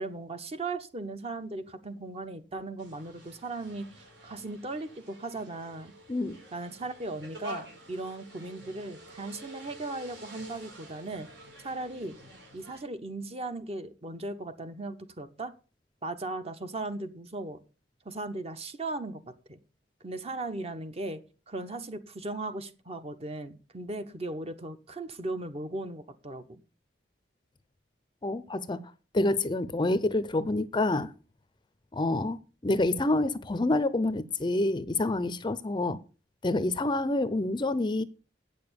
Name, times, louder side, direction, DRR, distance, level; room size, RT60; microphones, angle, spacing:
voice 1, 0.0-5.9 6.5-11.3 11.6-12.2 12.5-15.5 16.0-17.6 18.0-19.2 19.5-19.6 20.0-26.6, right 2 dB, 35° right, 1.0 m, -37 dB
sound 1, 2.8-12.8, equal, 90° right, 5.6 m, -48 dB
voice 2, 28.2-28.8 29.1-31.1 31.9-36.0 36.4-38.0, left 2 dB, 25° left, 0.5 m, -27 dB
8.7 x 6.9 x 6.8 m
head